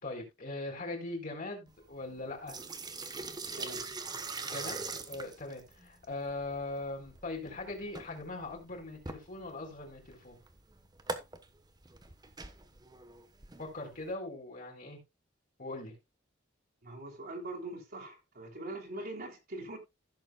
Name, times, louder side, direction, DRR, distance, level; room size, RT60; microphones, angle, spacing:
voice 1, 0.0-2.6 4.4-10.4 13.6-15.0 15.6-16.0, left 2 dB, 45° left, 4.1 m, -40 dB
sound 1, 1.7-14.1, right 3 dB, 20° right, 1.1 m, -43 dB
voice 2, 16.8-19.8, right 2 dB, 50° right, 3.1 m, -42 dB
16.0 x 7.1 x 2.3 m
head